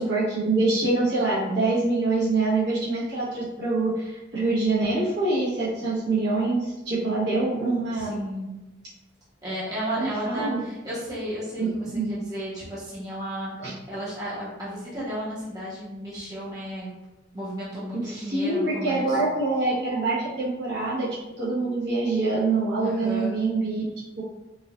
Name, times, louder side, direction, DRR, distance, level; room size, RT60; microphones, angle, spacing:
voice 1, 0.0-8.1 10.0-10.6 11.6-12.2 13.6-13.7 17.9-23.8 24.2-24.3, right 3 dB, 60° right, -8 dB, 1.2 m, -25 dB
voice 2, 7.9-8.5 9.4-16.9 17.3-19.2 22.8-23.3, equal, 20° right, -10 dB, 1.0 m, -33 dB
4.7 x 2.4 x 2.4 m, 1.0 s
head